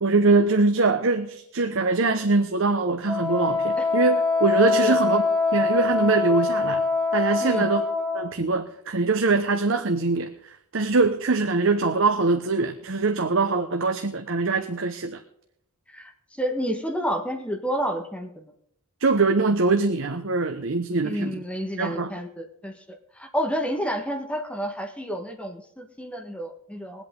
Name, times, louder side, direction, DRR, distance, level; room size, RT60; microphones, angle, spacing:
voice 1, 0.0-5.2 5.5-6.8 7.1-7.8 8.1-10.3 10.7-15.2 19.0-21.4 21.8-22.1, right 3 dB, 60° right, 6 dB, 0.9 m, -23 dB
Wind instrument woodwind instrument, 3.0-8.3, left 3 dB, 25° right, 2.0 m, -24 dB
voice 2, 16.4-18.5 21.0-27.0, equal, 5° left, 3 dB, 1.4 m, -30 dB
21.5 x 8.3 x 3.7 m, 0.72 s
head